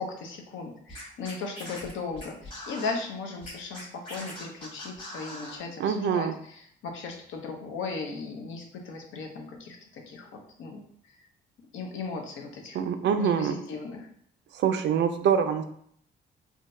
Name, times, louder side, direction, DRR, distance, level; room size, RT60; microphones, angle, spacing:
voice 1, 0.0-10.8 11.7-12.8 13.0-14.1, left 4 dB, 75° left, 2 dB, 0.7 m, -37 dB
Scratching (performance technique), 0.9-2.9 3.4-5.6, left 1 dB, 25° left, 1.3 m, -41 dB
voice 2, 5.8-6.3 12.7-13.5 14.5-15.6, right 7 dB, 65° right, 8 dB, 0.4 m, -25 dB
3.7 x 2.2 x 2.6 m, 0.65 s
cardioid pair, 90°, 20 cm